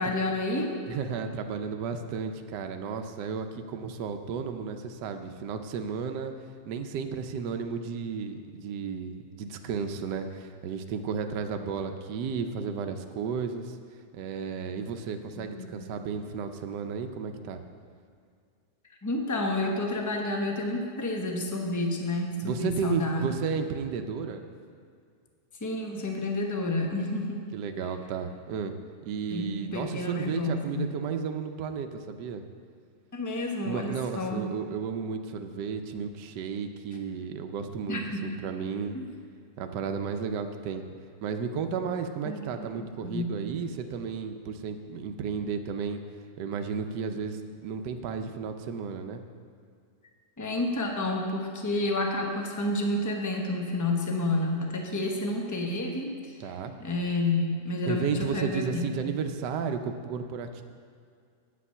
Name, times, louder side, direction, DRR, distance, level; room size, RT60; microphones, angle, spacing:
voice 1, 0.0-0.7 15.4-15.7 19.0-23.4 25.6-27.4 29.3-30.8 33.1-34.4 37.9-38.2 38.9-39.0 42.2-43.3 50.4-56.3 56.8-59.1, left 2 dB, 15° left, 1 dB, 0.6 m, -30 dB
voice 2, 0.9-6.3 6.7-13.8 14.1-17.6 22.4-24.5 27.5-28.7 29.0-32.4 33.6-39.0 39.6-40.8 41.2-46.0 46.4-49.2 56.4-56.7 57.9-60.6, right 6 dB, 80° right, 6 dB, 1.2 m, -33 dB
8.5 x 8.5 x 5.5 m, 2.3 s
omnidirectional pair, 1.8 m